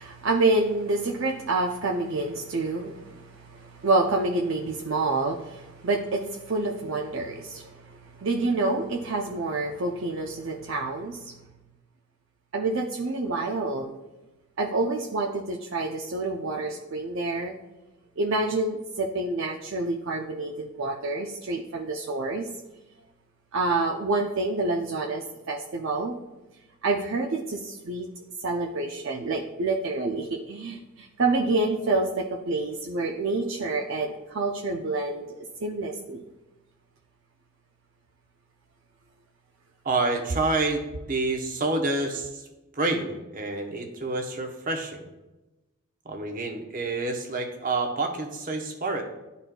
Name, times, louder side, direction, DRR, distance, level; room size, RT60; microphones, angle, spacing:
voice 1, 0.0-11.3 12.5-13.9 14.6-17.5 18.2-22.5 23.5-26.2 26.8-28.1 28.4-36.2, right 2 dB, 60° right, 0 dB, 0.5 m, -28 dB
voice 2, 39.8-42.4 42.7-45.0 46.0-49.0, right 2 dB, 40° right, 3 dB, 0.9 m, -28 dB
11.5 x 4.1 x 2.3 m, 1.1 s
head